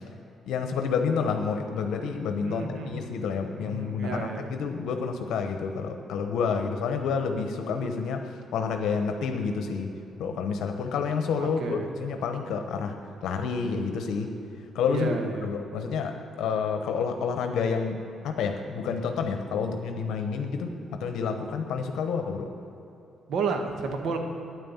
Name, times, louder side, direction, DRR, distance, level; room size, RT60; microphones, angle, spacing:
voice 1, 0.4-9.9 10.2-14.4 14.7-15.1 15.4-22.5, left 5 dB, 80° left, 5 dB, 0.9 m, -29 dB
voice 2, 2.4-3.1 3.5-4.5 11.4-11.9 14.9-15.5 23.3-24.2, right 4 dB, 70° right, 4 dB, 1.4 m, -32 dB
9.6 x 9.2 x 7.1 m, 2.8 s
cardioid pair, 90°, 0 cm